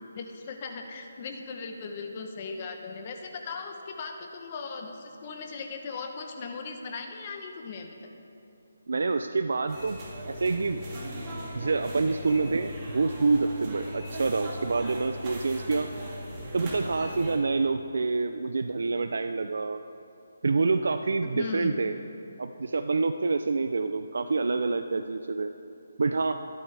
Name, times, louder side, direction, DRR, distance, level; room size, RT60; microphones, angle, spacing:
voice 1, 0.1-8.1 21.3-21.7, left 4 dB, 30° left, 4 dB, 0.9 m, -38 dB
voice 2, 8.9-10.0 10.3-11.1 11.5-15.9 16.5-19.8 20.4-22.0 22.4-25.5 26.0-26.3, right 3 dB, 70° right, 8 dB, 0.5 m, -27 dB
sound 1, 9.7-17.4, equal, 25° right, 2.7 m, -38 dB
24.0 x 9.3 x 3.4 m, 2.8 s
hypercardioid pair, 165°, 0 cm